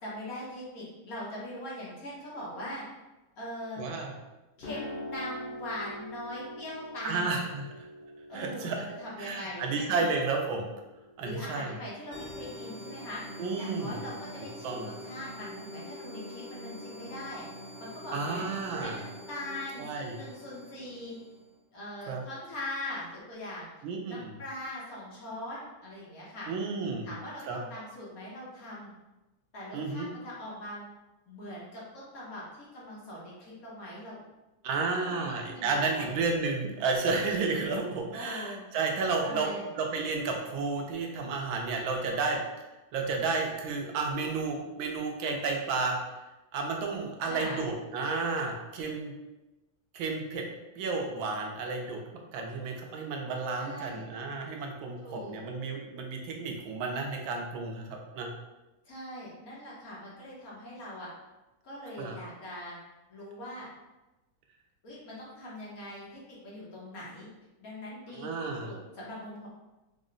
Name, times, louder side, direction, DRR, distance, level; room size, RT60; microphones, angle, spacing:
voice 1, 0.0-2.8 3.4-3.8 4.6-7.3 8.3-10.1 11.2-13.2 13.6-17.4 17.8-18.4 18.8-21.2 21.7-23.7 24.1-26.5 27.0-28.9 29.5-30.8 31.3-32.4 32.7-34.2 34.9-36.1 38.1-38.6 39.2-39.7 47.2-47.6 53.5-54.0 55.0-55.4 58.8-61.1 61.6-62.8 63.1-63.7 64.8-67.3 67.6-69.5, left 1 dB, 55° left, -6 dB, 1.2 m, -41 dB
voice 2, 3.8-4.1 7.0-7.9 8.3-8.8 9.2-10.7 11.2-11.7 13.4-14.0 14.4-14.9 18.1-19.0 19.8-20.2 22.1-22.2 23.8-24.4 26.5-27.1 27.5-27.6 29.7-30.1 34.6-39.5 39.8-42.4 42.9-46.0 46.5-49.1 49.9-50.5 50.8-52.0 52.3-58.3 62.0-62.2 68.1-68.7, right 4 dB, 80° right, 1 dB, 1.4 m, -32 dB
sound 1, 4.6-12.6, left 1 dB, 80° left, 0.5 m, -45 dB
sound 2, 12.1-21.5, left 1 dB, 25° left, 1.0 m, -44 dB
4.3 x 2.1 x 3.7 m, 1.0 s
omnidirectional pair, 2.2 m